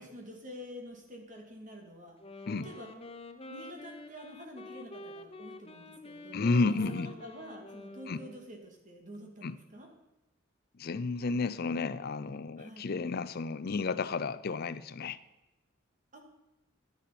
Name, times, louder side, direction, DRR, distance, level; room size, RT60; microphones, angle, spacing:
voice 1, 0.0-2.9 3.5-9.9 12.6-12.9 16.1-16.2, equal, 40° right, 3 dB, 2.3 m, -48 dB
Wind instrument woodwind instrument, 2.1-8.6, left 2 dB, 30° left, 0.9 m, -48 dB
voice 2, 6.3-7.1 8.1-8.2 9.4-9.6 10.8-15.2, left 3 dB, 50° left, 12 dB, 0.5 m, -32 dB
11.0 x 10.5 x 5.9 m, 0.98 s
head